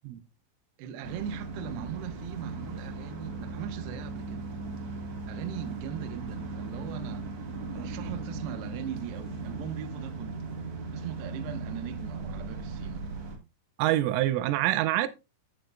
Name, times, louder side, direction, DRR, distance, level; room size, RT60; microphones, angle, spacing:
voice 1, 0.8-4.4 5.3-7.3 7.7-10.5 10.9-13.1, right 9 dB, 75° right, 2.7 m, -40 dB
sound 1, 1.0-13.4, right 3 dB, 55° right, 1.9 m, -38 dB
voice 2, 13.8-15.1, right 15 dB, 90° right, 3.3 m, -25 dB
13.0 x 8.2 x 2.3 m
omnidirectional pair, 5.6 m